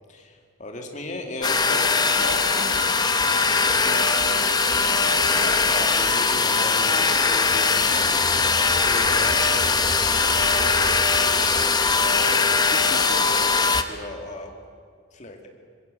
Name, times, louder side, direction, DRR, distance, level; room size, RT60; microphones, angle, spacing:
voice 1, 0.0-1.5 5.3-13.6 13.9-14.5 15.1-15.5, left 1 dB, 40° left, 3 dB, 2.5 m, -37 dB
voice 2, 1.1-5.4, left 2 dB, 90° left, 5 dB, 2.2 m, -39 dB
sound 1, 1.4-13.8, left 4 dB, 20° left, 1.0 m, -21 dB
sound 2, 1.8-9.8, right 4 dB, 75° right, 2.9 m, -40 dB
sound 3, 6.9-13.6, equal, 40° right, 1.9 m, -39 dB
25.0 x 20.5 x 7.8 m, 2.1 s
head